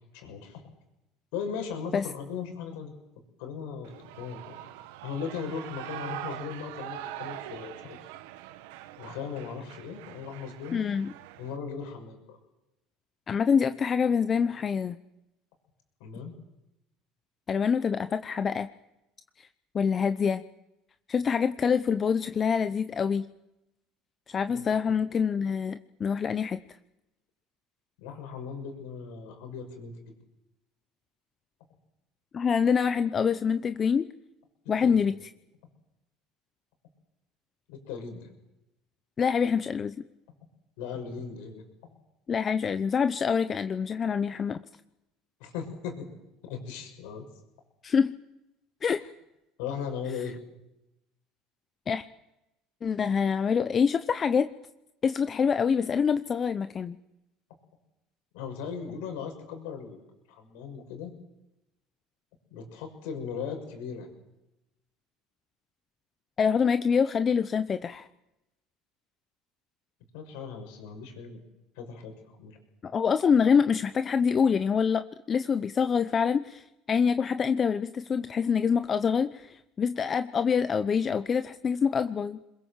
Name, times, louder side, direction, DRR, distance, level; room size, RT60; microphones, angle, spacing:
voice 1, 0.1-0.6 1.3-2.9 3.4-4.6 5.0-8.1 9.0-10.8 11.4-12.4 16.0-16.4 24.5-24.6 28.0-30.1 34.8-35.0 37.7-38.3 40.8-41.6 45.4-46.1 46.4-47.3 49.6-50.4 58.3-60.0 60.3-61.1 62.5-64.1 70.1-71.4 71.8-72.6, left 6 dB, 80° left, 5 dB, 6.5 m, -38 dB
Shout / Cheering, 3.8-11.6, right 13 dB, 85° right, 1.2 m, -43 dB
voice 2, 10.7-11.1 13.3-15.0 17.5-18.7 19.4-19.5 19.7-20.4 21.1-23.3 24.3-26.6 32.3-34.1 34.7-35.1 39.2-39.9 42.3-44.6 47.8-48.1 48.8-49.0 51.9-52.0 52.8-54.5 55.0-57.0 66.4-68.1 72.8-82.4, left 6 dB, 35° left, 11 dB, 0.8 m, -26 dB
26.0 x 22.0 x 7.5 m, 0.92 s
supercardioid pair, 105°, 0 cm